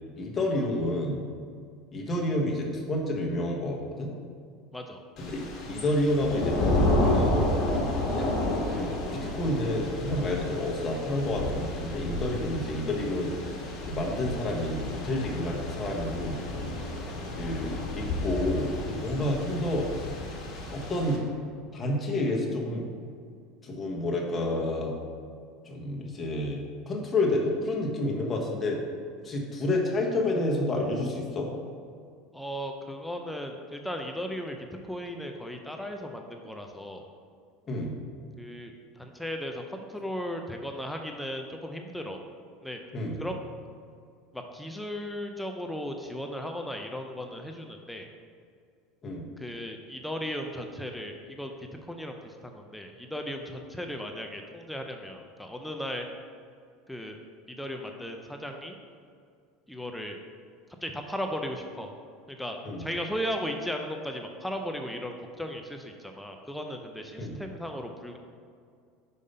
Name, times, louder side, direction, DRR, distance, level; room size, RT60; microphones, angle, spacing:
voice 1, 0.2-1.2 1.9-4.1 5.2-7.5 8.1-8.3 8.7-13.3 13.9-14.8 15.0-16.4 17.4-20.1 20.7-21.2 21.7-22.9 23.6-24.9 25.6-28.8 29.2-31.5 37.7-37.9 42.9-43.2 49.0-49.2 62.6-62.9 67.2-67.4, left 1 dB, 25° left, -1 dB, 1.4 m, -29 dB
Thunder / Rain, 5.2-21.2, left 1 dB, 50° left, 1.6 m, -31 dB
voice 2, 32.3-37.0 38.4-42.2 42.6-42.8 43.2-43.4 44.3-48.1 49.4-51.5 51.9-56.0 56.9-57.2 57.6-58.8 59.7-60.2 60.8-61.9 62.3-68.2, equal, 5° left, 3 dB, 0.6 m, -36 dB
5.6 x 4.8 x 5.5 m, 2.3 s
supercardioid pair, 110°, 0 cm